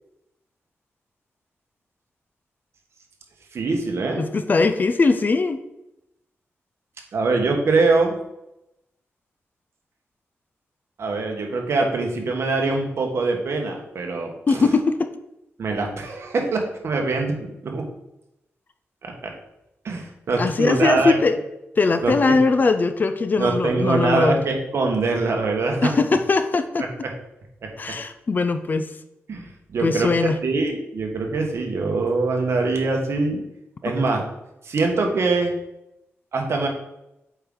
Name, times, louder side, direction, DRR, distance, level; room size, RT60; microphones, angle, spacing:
voice 1, 3.5-4.3 7.1-8.1 11.0-14.6 15.6-17.8 19.0-19.3 19.8-21.2 22.0-22.4 23.4-25.9 27.0-27.1 27.6-28.0 29.3-33.4 33.8-34.2 34.6-35.5 36.3-36.7, right 3 dB, 65° right, 2 dB, 1.3 m, -23 dB
voice 2, 4.2-5.6 14.5-15.1 20.4-21.4 21.8-24.4 25.8-26.9 27.8-28.9 29.8-30.4, left 3 dB, 40° left, 9 dB, 0.5 m, -20 dB
7.9 x 4.7 x 3.8 m, 0.88 s
wide cardioid pair, 140°, 5 cm